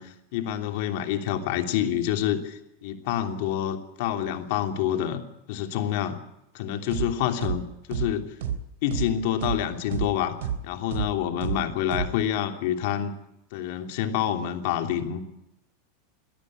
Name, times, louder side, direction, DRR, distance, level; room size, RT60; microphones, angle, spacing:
voice 1, 0.0-5.2 5.5-6.2 6.5-7.6 7.9-8.3 8.8-10.3 10.6-13.1 13.5-15.3, left 10 dB, 60° left, 6 dB, 3.0 m, -27 dB
sound 1, 6.9-7.1 7.4-7.6 7.9-8.1 8.4-8.6 8.9-9.1 9.4-9.6 9.9-10.1 10.4-10.6 10.9-11.1 11.4-11.6 11.9-12.1, right 9 dB, 80° right, 3.6 m, -28 dB
23.0 x 13.5 x 9.9 m, 0.87 s
supercardioid pair, 135°, 0 cm